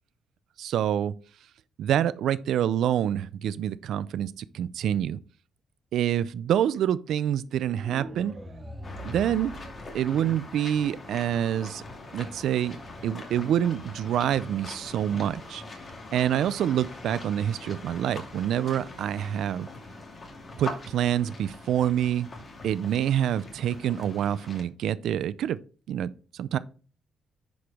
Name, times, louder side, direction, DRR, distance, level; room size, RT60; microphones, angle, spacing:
voice 1, 0.6-1.1 1.8-5.2 5.9-8.3 9.0-9.5 9.9-11.8 12.1-12.8 13.0-15.6 16.1-19.7 20.6-22.3 22.6-25.6 25.9-26.1 26.4-26.6, right 10 dB, 75° right, 0.5 m, -26 dB
sound 1, 7.7-10.7, equal, 20° right, 2.6 m, -42 dB
sound 2, 8.8-24.6, left 2 dB, 35° left, 2.6 m, -42 dB
10.0 x 5.0 x 3.5 m
cardioid pair, 90°, 0 cm